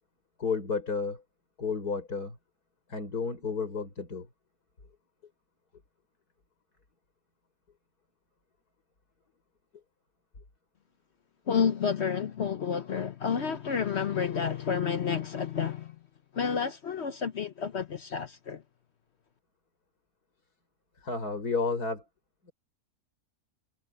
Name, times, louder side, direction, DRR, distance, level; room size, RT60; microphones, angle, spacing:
voice 1, 0.4-1.2 1.6-2.4 2.9-4.3 21.0-22.0, left 4 dB, 85° left, 5.5 m, -31 dB
voice 2, 11.5-16.0 16.3-18.6, left 7 dB, 50° left, 1.0 m, -30 dB
omnidirectional pair, 1.6 m